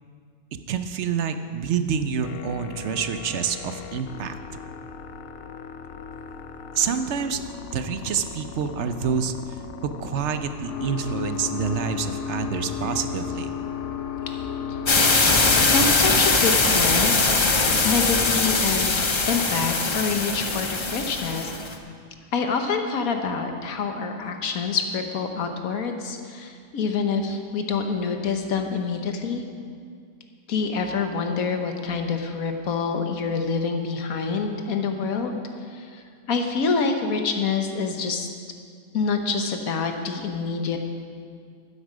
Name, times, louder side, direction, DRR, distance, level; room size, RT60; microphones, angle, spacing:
voice 1, 0.7-4.4 6.8-7.4 7.7-9.3 9.8-13.6, right 7 dB, 60° right, 9 dB, 0.9 m, -27 dB
sound 1, 2.2-18.7, left 7 dB, 65° left, 0.9 m, -35 dB
sound 2, 14.9-21.7, left 3 dB, 30° left, 0.5 m, -21 dB
voice 2, 15.6-17.1 17.4-17.6 17.8-18.9 19.2-21.6 22.3-29.4 30.5-35.4 35.7-38.3 38.9-40.8, left 5 dB, 90° left, 5 dB, 1.5 m, -26 dB
12.0 x 9.8 x 5.0 m, 2.1 s
omnidirectional pair, 1.4 m